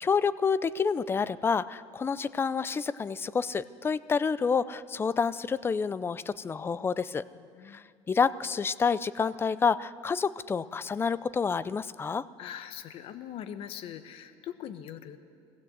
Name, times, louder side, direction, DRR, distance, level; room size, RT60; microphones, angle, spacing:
voice 1, 0.0-7.2 7.7-12.3, left 5 dB, 20° left, 16 dB, 0.5 m, -28 dB
voice 2, 7.3-7.9 12.4-15.2, left 10 dB, 55° left, 10 dB, 1.0 m, -42 dB
23.0 x 16.5 x 8.0 m, 2.4 s
cardioid pair, 135°, 12 cm